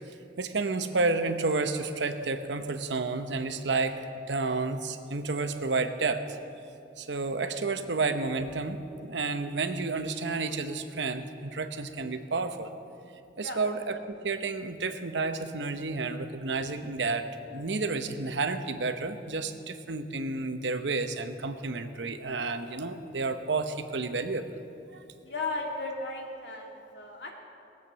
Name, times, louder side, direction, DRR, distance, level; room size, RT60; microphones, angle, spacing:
voice 1, 0.4-4.0 4.3-6.4 7.0-12.7 13.4-24.6 24.9-25.0, right 3 dB, 85° right, 8 dB, 0.9 m, -31 dB
voice 2, 25.2-27.3, left 3 dB, 70° left, 0 dB, 2.2 m, -36 dB
19.5 x 8.1 x 6.8 m, 2.7 s
head